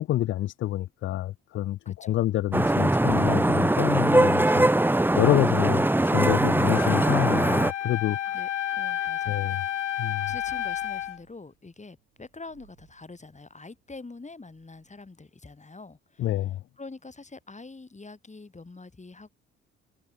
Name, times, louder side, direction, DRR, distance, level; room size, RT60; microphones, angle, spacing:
voice 1, 0.0-4.7 5.2-8.3 9.3-9.6 10.0-10.3 16.2-16.6, left 14 dB, 35° left, 0.4 m, -27 dB
voice 2, 1.8-2.3 8.3-9.8 10.3-19.3, left 3 dB, 20° left, 4.1 m, -45 dB
Vehicle horn car horn honking / Traffic noise roadway noise, 2.5-7.7, right 1 dB, 5° right, 0.9 m, -21 dB
Wind instrument woodwind instrument, 6.7-11.2, left 12 dB, 85° left, 0.7 m, -31 dB
sound 1, 7.8-9.3 9.6-9.7 9.9-15.1, right 22 dB, 75° right, 6.6 m, -60 dB
figure-of-eight pair, 45°, 35 cm